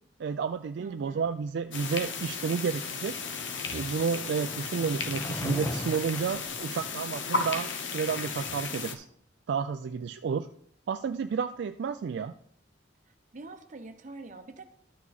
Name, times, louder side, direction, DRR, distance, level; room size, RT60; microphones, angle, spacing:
voice 1, 0.2-3.1 3.7-9.1 9.5-10.5 10.9-12.3, right 6 dB, 60° right, 8 dB, 0.3 m, -31 dB
voice 2, 0.8-1.3 13.3-14.6, right 3 dB, 40° right, 7 dB, 0.8 m, -45 dB
sound 1, 1.7-8.9, left 4 dB, 70° left, 0.8 m, -35 dB
Skateboard, 2.3-7.7, left 1 dB, 15° left, 0.7 m, -40 dB
12.5 x 4.6 x 4.1 m, 0.66 s
head